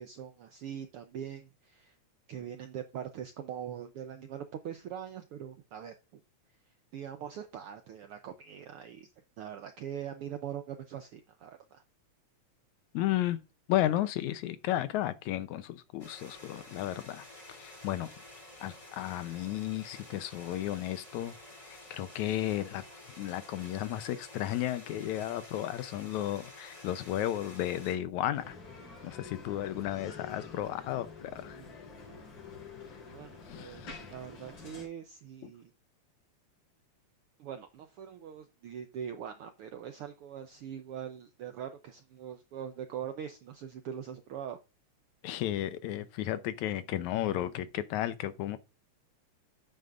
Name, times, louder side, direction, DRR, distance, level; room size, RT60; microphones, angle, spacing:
voice 1, 0.0-1.9 2.3-6.2 6.9-9.1 9.4-11.8 31.2-32.0 33.1-35.7 37.4-44.6, right 9 dB, 80° right, 1.3 m, -42 dB
voice 2, 12.9-13.4 13.7-18.1 18.6-21.4 21.6-22.8 23.2-28.6 29.0-31.6 33.5-34.0 35.4-35.5 45.2-48.6, left 13 dB, 80° left, 2.1 m, -33 dB
sound 1, 16.0-28.0, left 1 dB, 10° left, 2.5 m, -51 dB
Bicycle, 28.3-34.9, left 4 dB, 55° left, 4.3 m, -48 dB
9.3 x 8.8 x 2.5 m
omnidirectional pair, 3.4 m